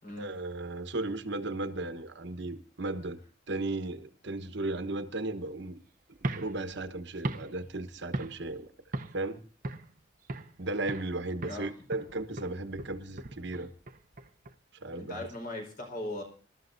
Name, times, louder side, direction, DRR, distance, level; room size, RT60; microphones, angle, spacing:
voice 1, 0.2-3.2 3.5-5.8 6.3-8.7 9.1-9.4 10.6-13.7 14.7-15.3, right 2 dB, 60° right, 1.2 m, -35 dB
sound 1, 6.1-8.6 8.9-9.3 9.6-10.6 10.9-11.2 11.4-14.5, right 2 dB, 45° right, 0.8 m, -39 dB
voice 2, 15.0-16.2, left 1 dB, 45° left, 4.8 m, -38 dB
26.0 x 13.0 x 2.7 m
head